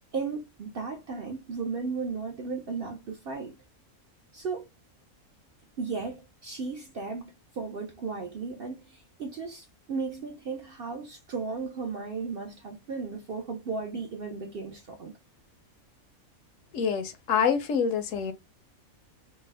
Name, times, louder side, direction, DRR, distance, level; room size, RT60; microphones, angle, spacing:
voice 1, 0.1-3.6 4.3-4.7 5.8-15.1, right 4 dB, 60° right, 0.6 m, -35 dB
voice 2, 16.7-18.3, left 7 dB, 70° left, 0.9 m, -26 dB
3.4 x 2.0 x 3.2 m
omnidirectional pair, 1.5 m